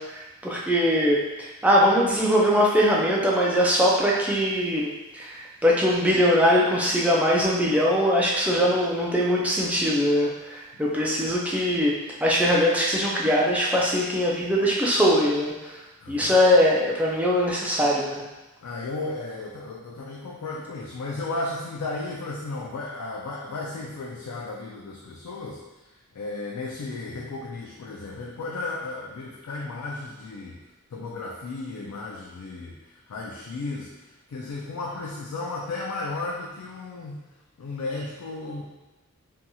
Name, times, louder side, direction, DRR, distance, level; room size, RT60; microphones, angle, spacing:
voice 1, 0.0-11.9 12.2-15.7 16.1-18.2, equal, 5° right, -4 dB, 0.3 m, -22 dB
voice 2, 16.0-16.4 18.6-25.6 25.9-30.6 30.9-37.2 37.6-38.6, left 3 dB, 85° left, -3 dB, 0.4 m, -34 dB
2.8 x 2.7 x 2.2 m, 1.1 s
head